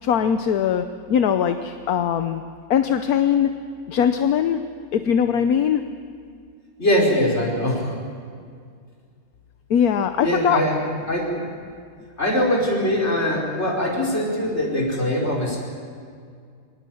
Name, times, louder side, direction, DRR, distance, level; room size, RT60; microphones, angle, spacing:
voice 1, 0.0-2.4 2.7-3.5 3.9-4.6 4.9-5.8 9.7-10.6, left 8 dB, 80° left, 8 dB, 1.3 m, -21 dB
voice 2, 6.8-7.9 10.2-10.8 11.1-11.3 12.2-15.6, equal, 45° left, -3 dB, 5.4 m, -22 dB
25.5 x 19.5 x 7.8 m, 2.2 s
omnidirectional pair, 1.6 m